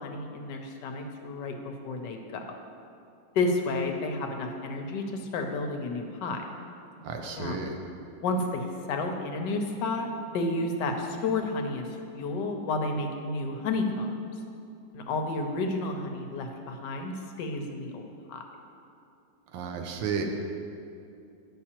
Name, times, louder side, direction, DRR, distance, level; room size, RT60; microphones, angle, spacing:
voice 1, 0.0-2.4 3.3-6.4 7.4-7.6 8.2-14.1 14.9-18.4, left 2 dB, 75° left, 4 dB, 1.2 m, -31 dB
voice 2, 7.0-7.7 19.5-20.2, right 6 dB, 80° right, 3 dB, 1.4 m, -32 dB
9.8 x 6.2 x 2.9 m, 2.5 s
omnidirectional pair, 2.0 m